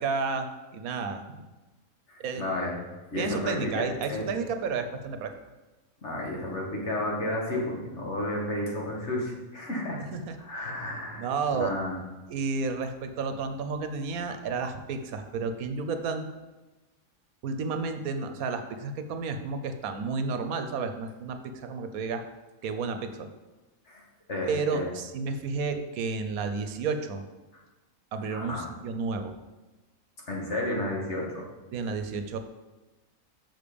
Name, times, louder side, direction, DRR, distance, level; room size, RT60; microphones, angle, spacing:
voice 1, 0.0-1.4 2.2-2.4 3.2-5.3 10.1-10.4 11.1-11.7 12.3-16.3 17.4-22.2 22.6-23.3 24.4-27.2 28.1-29.3 31.7-32.4, right 4 dB, 75° right, 8 dB, 1.1 m, -31 dB
voice 2, 2.1-2.7 3.1-3.8 4.1-4.3 6.0-10.0 10.4-12.0 23.9-24.0 24.3-24.9 28.3-28.7 30.3-31.4, left 1 dB, 50° left, -2 dB, 2.0 m, -32 dB
6.8 x 6.1 x 5.1 m, 1.1 s
omnidirectional pair, 1.5 m